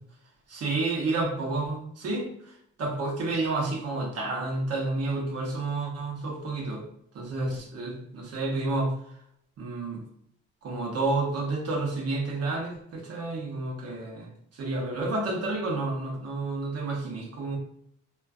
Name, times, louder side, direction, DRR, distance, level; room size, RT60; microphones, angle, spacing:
voice 1, 0.5-6.8 7.1-8.9 9.6-10.0 10.6-17.6, right 2 dB, 55° right, 0 dB, 0.7 m, -30 dB
2.4 x 2.2 x 2.3 m, 0.72 s
cardioid pair, 90°, 30 cm